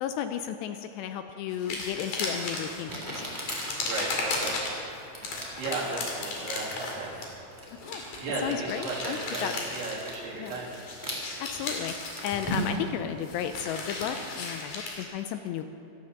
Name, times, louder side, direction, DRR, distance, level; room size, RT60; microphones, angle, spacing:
voice 1, 0.0-3.3 5.2-5.4 7.9-8.0 8.4-9.5 10.4-10.6 11.4-11.9 12.2-15.6, left 9 dB, 80° left, 8 dB, 2.6 m, -34 dB
sound 1, 1.5-2.8 3.3-4.8 5.2-10.3 10.6-15.0, left 3 dB, 55° left, 3.6 m, -36 dB
Crumpling crinkling, 1.9-2.0 2.9-12.9, right 1 dB, 5° right, 2.0 m, -39 dB
voice 2, 3.9-4.6 5.6-7.2 8.2-10.8, right 3 dB, 80° right, -5 dB, 5.3 m, -34 dB
16.0 x 13.5 x 6.6 m, 2.8 s
omnidirectional pair, 5.3 m